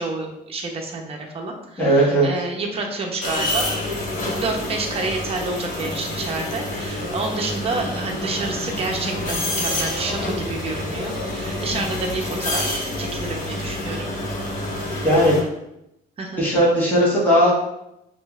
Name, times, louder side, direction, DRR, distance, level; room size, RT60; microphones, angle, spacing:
voice 1, 0.0-3.7 4.4-14.1 16.2-16.4, right 3 dB, 35° right, 2 dB, 0.7 m, -29 dB
voice 2, 1.8-2.3 15.0-15.4 16.4-17.5, equal, 10° left, -8 dB, 1.3 m, -17 dB
sound 1, 3.2-15.4, left 1 dB, 50° left, 1.2 m, -28 dB
5.1 x 2.5 x 2.4 m, 0.83 s
cardioid pair, 110°, 17 cm